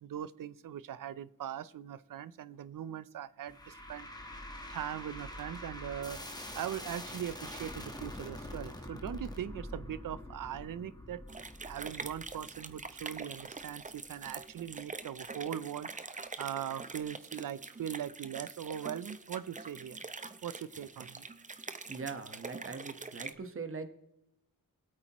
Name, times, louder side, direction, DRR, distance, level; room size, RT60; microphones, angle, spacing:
voice 1, 0.0-6.2 6.5-20.0 20.4-21.3, right 10 dB, 60° right, 18 dB, 0.6 m, -41 dB
sound 1, 3.5-14.7, left 1 dB, 10° left, 1.3 m, -46 dB
sound 2, 11.3-23.3, right 4 dB, 20° right, 0.7 m, -45 dB
voice 2, 21.9-23.9, right 4 dB, 35° right, 8 dB, 1.2 m, -41 dB
22.0 x 8.6 x 3.0 m, 0.89 s
wide cardioid pair, 130°, 36 cm